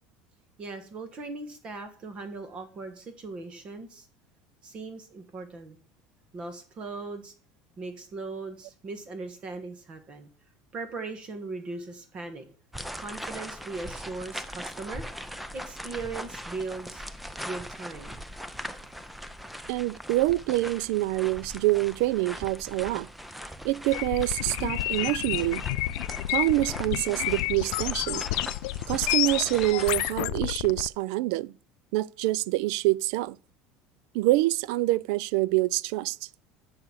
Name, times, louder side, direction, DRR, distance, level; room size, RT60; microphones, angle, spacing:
voice 1, 0.6-4.1 4.6-5.7 6.3-7.3 7.8-10.3 10.7-12.4 12.9-15.0 15.5-17.0 17.4-18.2, right 3 dB, 25° right, 1.3 m, -39 dB
sound 1, 12.7-30.1, equal, ahead, 0.5 m, -40 dB
voice 2, 19.7-23.1 23.6-25.6 26.3-28.2 28.9-31.5 31.9-33.4 34.1-36.2, right 18 dB, 70° right, 0.3 m, -26 dB
sound 2, 23.9-30.9, left 19 dB, 80° left, 0.4 m, -30 dB
7.0 x 6.8 x 7.1 m
cardioid pair, 165°, 4 cm